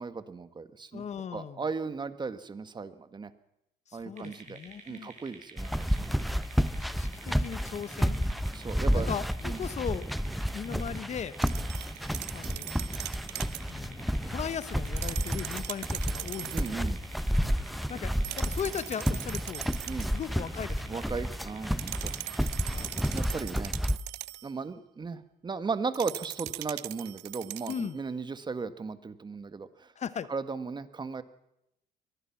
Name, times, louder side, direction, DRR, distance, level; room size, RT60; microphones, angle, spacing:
voice 1, 0.0-1.0 1.3-3.3 3.9-4.6 4.9-6.4 8.5-9.1 9.4-9.6 16.5-17.0 19.9-20.1 20.9-22.1 23.1-23.8 24.4-29.9 30.3-31.2, right 4 dB, 25° right, 11 dB, 1.6 m, -36 dB
voice 2, 0.9-1.6 3.9-5.1 6.7-8.2 8.9-10.1 10.5-11.4 12.3-12.6 13.7-17.0 17.9-19.8 20.1-21.0 22.7-23.0 27.7-28.0 30.0-30.3, left 7 dB, 45° left, 15 dB, 1.0 m, -38 dB
sound 1, 4.2-23.2, right 5 dB, 45° right, 7.6 m, -50 dB
sound 2, 5.6-24.0, equal, ahead, 0.7 m, -31 dB
sound 3, 11.4-13.7 14.8-16.8 18.2-20.2 21.8-24.5 25.9-27.9, right 19 dB, 85° right, 0.7 m, -40 dB
23.0 x 19.0 x 5.9 m, 0.83 s
cardioid pair, 110°, 17 cm